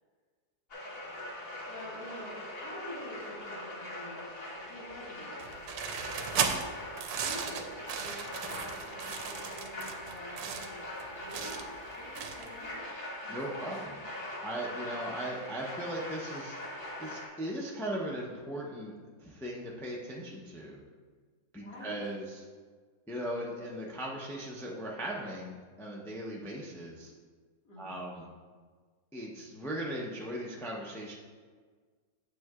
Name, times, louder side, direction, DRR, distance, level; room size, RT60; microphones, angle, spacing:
sound 1, 0.7-17.3, left 1 dB, 40° left, 1.5 m, -42 dB
voice 1, 1.7-4.3 4.5-5.6 6.2-6.5 7.1-14.0 21.6-22.0 27.6-28.1, equal, 80° left, -8 dB, 2.6 m, -48 dB
sound 2, 5.4-12.6, right 6 dB, 80° right, 1.1 m, -36 dB
voice 2, 13.3-14.0 14.4-18.9 19.2-20.8 21.5-22.5 23.1-27.1 27.8-28.3 29.1-31.1, right 1 dB, 5° left, -3 dB, 0.3 m, -38 dB
9.3 x 7.7 x 2.4 m, 1.5 s
omnidirectional pair, 1.7 m